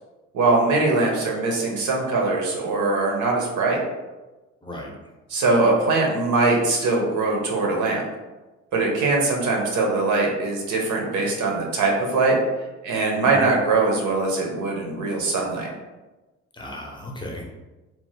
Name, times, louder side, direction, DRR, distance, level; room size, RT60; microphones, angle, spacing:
voice 1, 0.3-3.8 5.3-8.0 8.7-12.4 12.8-15.7, right 3 dB, 75° right, 0 dB, 0.8 m, -22 dB
voice 2, 4.6-5.0 13.2-13.5 16.5-17.4, left 1 dB, 15° left, -1 dB, 0.6 m, -35 dB
2.9 x 2.0 x 3.1 m, 1.1 s
cardioid pair, 90°, 30 cm